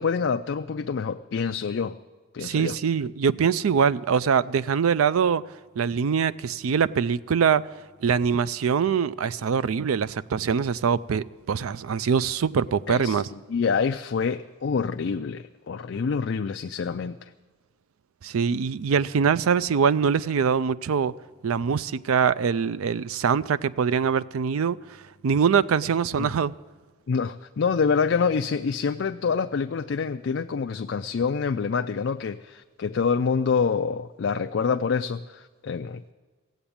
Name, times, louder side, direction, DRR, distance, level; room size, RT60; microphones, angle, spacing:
voice 1, 0.0-2.0 2.3-2.8 12.9-17.3 26.2-26.3 27.1-36.1, left 5 dB, 60° left, 7 dB, 0.4 m, -26 dB
voice 2, 2.4-5.4 5.8-7.6 8.0-13.3 18.2-21.1 21.4-24.8 25.2-26.5, right 6 dB, 90° right, 17 dB, 0.4 m, -23 dB
16.0 x 8.0 x 8.6 m, 1.4 s
head